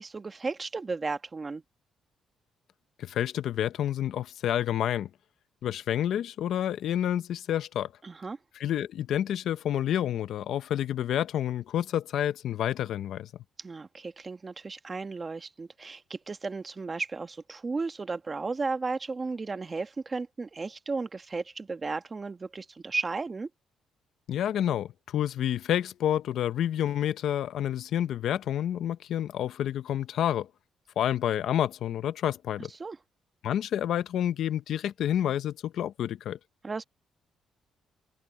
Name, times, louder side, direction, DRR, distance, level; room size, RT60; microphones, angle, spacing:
voice 1, 0.0-1.6 8.0-8.4 13.6-23.5 32.8-33.0 36.6-36.8, right 4 dB, 30° right, 1.4 m, -34 dB
voice 2, 3.0-5.1 5.6-7.9 8.6-13.3 24.3-30.5 31.0-32.7 33.4-36.4, left 11 dB, 75° left, 0.8 m, -29 dB
cardioid pair, 90°, 0 cm